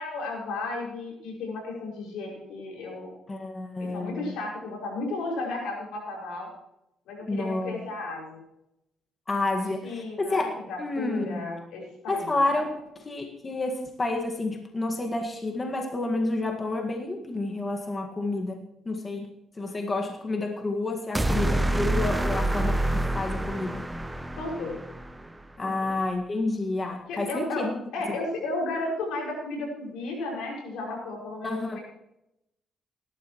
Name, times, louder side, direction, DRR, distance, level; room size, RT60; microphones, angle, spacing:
voice 1, 0.0-3.1 3.8-6.5 7.1-8.4 9.8-12.6 24.4-24.8 25.6-25.9 27.1-31.8, left 2 dB, 90° left, -1 dB, 6.0 m, -34 dB
voice 2, 3.3-4.4 7.3-7.8 9.3-11.5 12.1-18.6 18.9-19.3 19.6-23.9 25.6-27.7 28.1-28.2 31.4-31.8, left 2 dB, 30° left, 3 dB, 1.8 m, -30 dB
sound 1, 21.1-25.4, right 1 dB, 10° right, 0.9 m, -27 dB
18.0 x 12.5 x 3.1 m, 0.85 s
cardioid pair, 90°, 0 cm